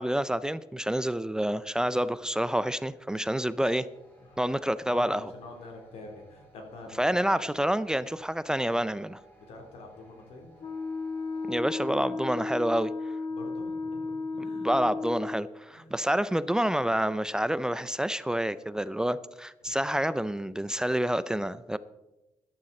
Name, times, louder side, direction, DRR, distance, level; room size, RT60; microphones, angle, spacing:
voice 1, 0.0-3.9 4.4-5.3 7.0-9.2 11.4-12.9 14.4-21.8, right 1 dB, 5° right, 15 dB, 0.4 m, -28 dB
sound 1, 1.8-12.0, right 1 dB, 15° left, 4.9 m, -60 dB
voice 2, 4.9-7.4 9.4-10.6 13.3-14.9 15.7-15.9 19.6-19.7, left 2 dB, 85° left, 2 dB, 3.6 m, -46 dB
Wind instrument woodwind instrument, 10.6-15.5, left 3 dB, 50° left, 2.1 m, -34 dB
14.0 x 12.0 x 4.3 m, 0.99 s
cardioid pair, 140°, 10 cm